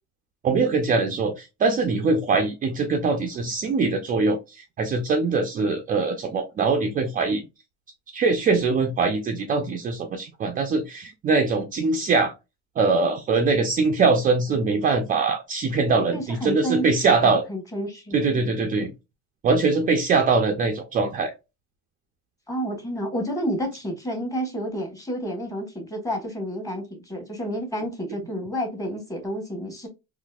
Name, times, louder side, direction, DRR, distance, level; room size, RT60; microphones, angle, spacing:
voice 1, 0.4-7.4 8.1-12.3 12.8-17.4 18.1-18.9 19.4-21.3, right 4 dB, 30° right, 0.4 m, -22 dB
voice 2, 16.1-18.3 22.5-29.9, equal, 10° left, 1.2 m, -30 dB
4.0 x 2.7 x 2.2 m
cardioid pair, 150°, 30 cm